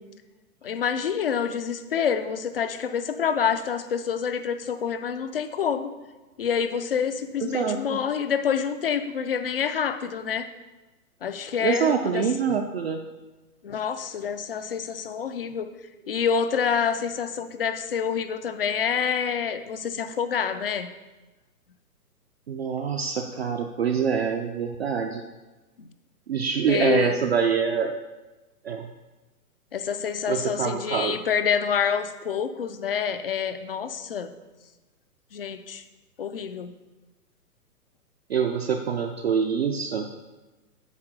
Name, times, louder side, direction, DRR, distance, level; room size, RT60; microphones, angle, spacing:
voice 1, 0.6-5.9 6.4-10.5 11.2-12.6 13.6-15.7 16.1-20.9 25.8-25.9 26.7-27.2 29.7-34.3 35.3-35.8 36.2-36.7, left 7 dB, 40° left, 10 dB, 0.4 m, -27 dB
voice 2, 7.4-8.0 11.6-13.0 22.5-25.2 26.3-28.0 28.6-28.9 30.3-31.2 38.3-40.1, right 6 dB, 40° right, 3 dB, 0.5 m, -25 dB
8.9 x 3.8 x 5.9 m, 1.1 s
figure-of-eight pair, 125°, 48 cm